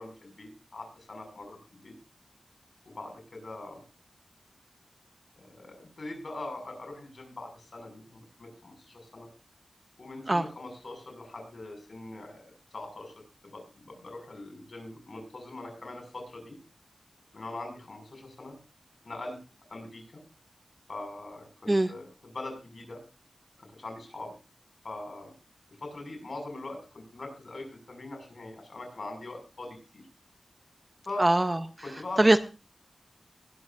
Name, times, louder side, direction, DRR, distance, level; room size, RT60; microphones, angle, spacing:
voice 1, 0.0-1.9 2.8-3.8 5.4-9.3 10.0-12.4 12.7-13.1 13.4-16.6 17.3-18.6 19.0-19.4 19.7-20.2 20.9-22.0 22.3-23.0 23.6-24.3 24.8-25.3 25.8-30.0 31.1-31.2 31.8-32.3, left 2 dB, 55° left, 3 dB, 5.9 m, -42 dB
voice 2, 31.2-31.6 32.2-32.4, right 1 dB, 20° right, 11 dB, 0.6 m, -21 dB
21.5 x 12.5 x 2.6 m, 0.32 s
wide cardioid pair, 115°, 0 cm